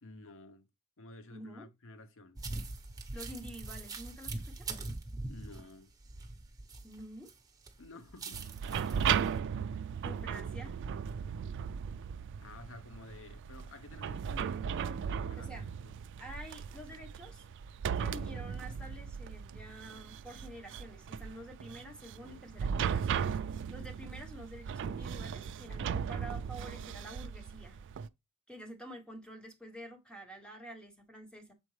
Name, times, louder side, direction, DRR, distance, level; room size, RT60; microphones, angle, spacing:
voice 1, 0.0-0.7 1.0-2.4 5.3-5.9 7.8-8.4 12.4-16.0, left 2 dB, 65° left, 0.8 m, -52 dB
voice 2, 1.3-1.7 3.1-4.7 6.8-7.3 8.7-9.1 10.0-10.8 15.4-15.7 16.2-17.5 18.0-27.8 28.5-31.5, equal, 5° left, 1.1 m, -48 dB
sound 1, 2.4-7.3 7.7-9.3, right 3 dB, 15° right, 0.9 m, -42 dB
sound 2, 8.3-28.1, right 7 dB, 60° right, 0.3 m, -37 dB
7.1 x 4.2 x 3.2 m
head